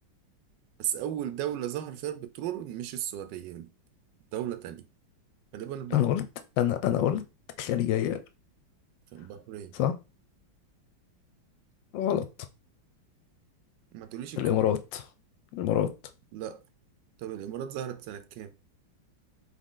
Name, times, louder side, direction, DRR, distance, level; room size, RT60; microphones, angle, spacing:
voice 1, 0.8-3.7 4.3-4.9 5.5-6.1 9.1-9.8 13.9-14.7 16.3-16.6 17.2-18.5, right 11 dB, 75° right, 1.1 m, -36 dB
voice 2, 5.9-6.2 6.6-7.2 7.6-8.2 9.8-9.9 11.9-12.3 14.4-15.0 15.5-15.9, left 11 dB, 75° left, 1.2 m, -26 dB
4.0 x 3.2 x 3.7 m
omnidirectional pair, 2.2 m